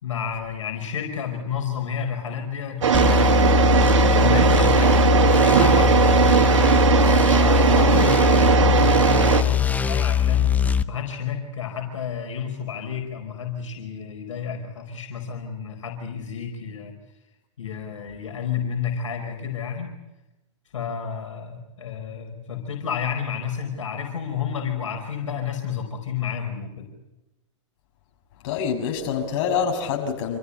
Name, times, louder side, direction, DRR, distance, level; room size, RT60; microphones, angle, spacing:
voice 1, 0.0-6.2 7.3-10.6 10.9-16.9 17.6-20.0 20.7-26.9, left 7 dB, 80° left, 4 dB, 5.0 m, -31 dB
sound 1, 2.8-9.4, right 7 dB, 80° right, 2.4 m, -18 dB
sound 2, 2.9-10.8, left 9 dB, 10° left, 0.9 m, -21 dB
voice 2, 28.4-30.4, left 7 dB, 50° left, 3 dB, 6.9 m, -26 dB
28.0 x 15.5 x 9.9 m, 0.98 s
hypercardioid pair, 130°, 16 cm